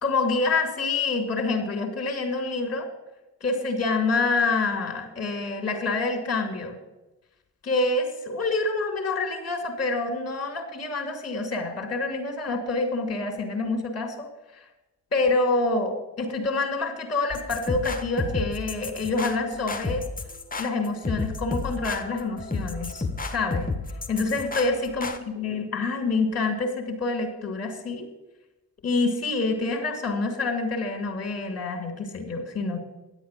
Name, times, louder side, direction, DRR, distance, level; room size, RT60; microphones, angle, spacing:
voice 1, 0.0-2.9 3.4-6.7 7.6-14.6 15.1-20.0 20.6-23.7 24.1-28.1 28.8-32.8, left 3 dB, 40° left, 3 dB, 2.7 m, -27 dB
sound 1, 17.3-25.2, left 3 dB, 20° left, 1.5 m, -32 dB
10.5 x 8.0 x 7.5 m, 1.0 s
hypercardioid pair, 45°, 37 cm